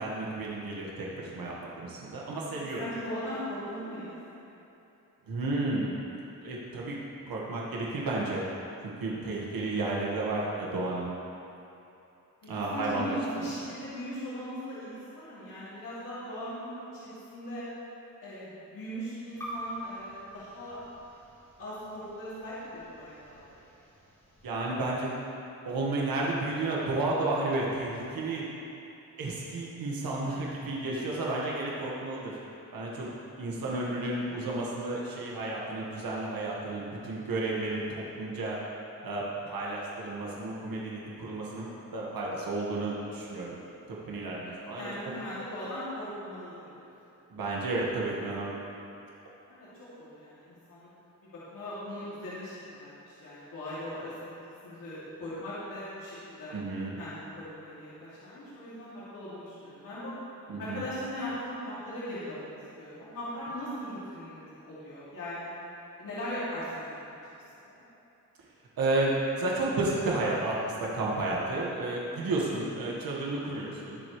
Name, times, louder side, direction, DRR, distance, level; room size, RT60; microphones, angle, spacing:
voice 1, 0.0-2.9 5.3-5.9 6.4-7.0 7.3-8.5 8.8-11.1 12.5-13.5 24.4-25.1 25.7-28.4 29.2-32.4 32.7-33.1 33.4-38.6 39.0-43.6 43.9-45.2 47.3-48.6 56.5-57.0 60.5-60.8 68.8-74.0, right 2 dB, 90° right, -4 dB, 1.8 m, -32 dB
voice 2, 2.8-4.2 12.7-17.7 18.2-20.8 21.6-23.5 33.5-33.6 44.4-46.9 49.5-49.7 50.0-50.9 51.3-54.3 54.6-56.5 57.0-60.1 60.6-62.5 62.8-65.5 66.0-67.2 67.7-67.8, equal, 70° left, -11 dB, 2.8 m, -39 dB
sound 1, 19.3-24.5, equal, 10° left, 2.0 m, -45 dB
20.0 x 7.9 x 3.3 m, 2.9 s
wide cardioid pair, 180°, 34 cm